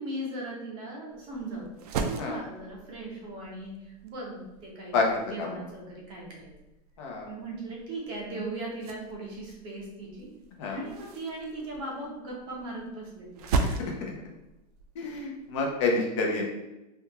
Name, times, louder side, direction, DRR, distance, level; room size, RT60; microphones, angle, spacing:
voice 1, 0.0-6.5 7.2-10.3 10.6-13.4, right 2 dB, 25° right, -2 dB, 0.6 m, -38 dB
sound 1, 1.1-15.9, right 4 dB, 70° right, 0.5 m, -38 dB
voice 2, 7.0-7.3 10.6-10.8 13.6-14.1 15.0-16.4, left 3 dB, 45° left, 0 dB, 0.6 m, -29 dB
3.4 x 2.3 x 2.8 m, 0.97 s
supercardioid pair, 175°, 20 cm